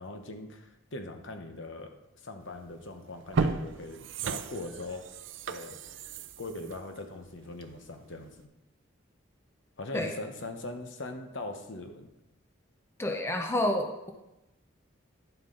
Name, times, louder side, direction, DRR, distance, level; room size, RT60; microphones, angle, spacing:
voice 1, 0.0-5.0 5.4-5.8 6.4-8.3 9.8-12.1, left 2 dB, 65° left, 5 dB, 1.0 m, -41 dB
sound 1, 2.6-2.7 3.2-7.9 8.3-8.4, right 4 dB, 65° right, 0.5 m, -34 dB
voice 2, 13.0-14.1, left 1 dB, 10° left, 3 dB, 0.7 m, -29 dB
10.5 x 7.5 x 3.9 m, 0.94 s
head